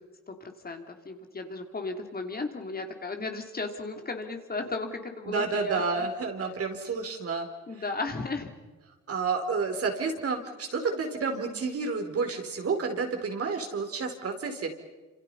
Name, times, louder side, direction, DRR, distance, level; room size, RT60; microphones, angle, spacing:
voice 1, 0.3-6.0 7.7-8.5, left 3 dB, 30° left, 4 dB, 3.3 m, -35 dB
voice 2, 5.2-7.5 9.1-14.7, right 4 dB, 50° right, 4 dB, 4.6 m, -30 dB
28.0 x 27.5 x 5.6 m, 1.2 s
cardioid pair, 90°, 30 cm